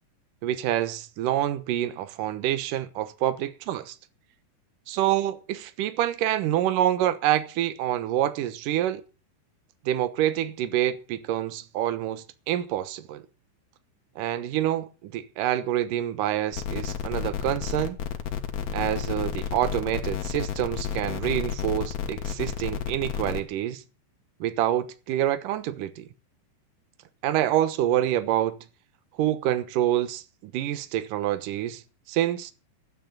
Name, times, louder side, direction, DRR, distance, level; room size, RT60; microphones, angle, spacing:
voice 1, 0.4-3.9 4.9-9.0 9.9-13.2 14.2-18.0 18.7-23.8 24.4-26.1 27.2-28.5 29.2-31.8 32.1-32.5, right 12 dB, 70° right, 2.3 m, -27 dB
sound 1, 16.5-23.4, left 8 dB, 60° left, 2.1 m, -31 dB
12.0 x 10.0 x 7.4 m
omnidirectional pair, 4.9 m